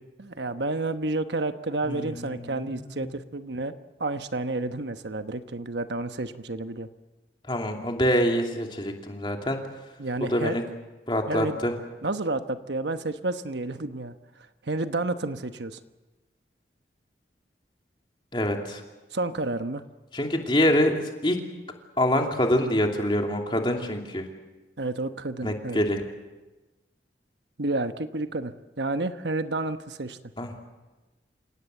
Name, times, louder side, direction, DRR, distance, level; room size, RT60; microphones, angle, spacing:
voice 1, 0.2-3.7 4.0-6.9 10.0-10.6 11.3-11.6 12.0-14.2 14.6-15.8 19.1-19.8 24.8-25.8 27.6-30.2, right 2 dB, 80° right, 9 dB, 1.1 m, -30 dB
voice 2, 1.8-3.1 7.5-9.6 10.2-10.6 11.1-11.7 18.3-18.8 20.1-21.4 22.0-24.3 25.4-26.0 30.4-30.5, left 1 dB, 25° left, 2 dB, 2.8 m, -25 dB
28.5 x 17.5 x 7.9 m, 1.2 s
head